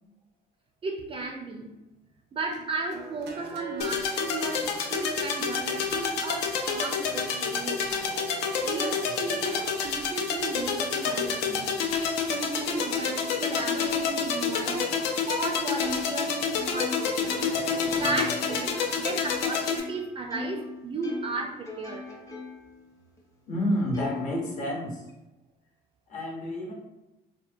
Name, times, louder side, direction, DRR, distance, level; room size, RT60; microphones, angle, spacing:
voice 1, 0.8-1.7 2.3-8.1 8.6-22.1, right 3 dB, 35° right, 2 dB, 0.3 m, -35 dB
sound 1, 2.5-12.0 12.6-14.2 14.6-15.7 17.3-19.2, right 5 dB, 90° right, 0.5 m, -46 dB
sound 2, 3.8-19.8, left 5 dB, 85° left, 0.4 m, -28 dB
voice 2, 9.0-9.4 23.5-25.0 26.1-26.7, equal, 50° left, -1 dB, 0.8 m, -30 dB
Plucked string instrument, 15.8-20.7 21.0-22.7 23.2-23.3 23.9-25.1, left 3 dB, 20° left, 0.6 m, -40 dB
2.8 x 2.1 x 2.5 m, 0.97 s
cardioid pair, 110°, 17 cm